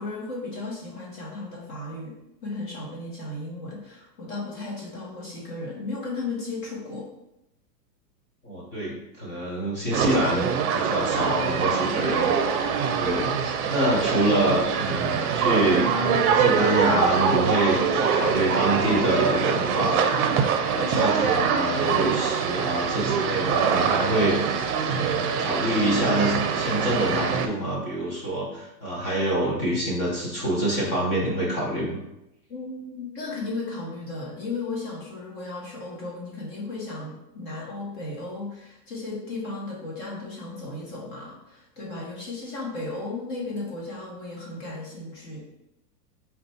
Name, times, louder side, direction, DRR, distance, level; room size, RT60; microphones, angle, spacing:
voice 1, 0.0-7.1 32.5-45.4, left 3 dB, 35° left, -4 dB, 0.9 m, -35 dB
voice 2, 8.4-10.5 10.7-12.6 13.0-13.3 13.7-15.9 16.3-20.1 20.6-24.4 24.9-32.0, right 1 dB, 15° left, -5 dB, 0.4 m, -26 dB
sound 1, 9.9-27.5, right 6 dB, 60° right, 0.6 m, -24 dB
4.0 x 2.3 x 4.0 m, 0.88 s
supercardioid pair, 150°, 49 cm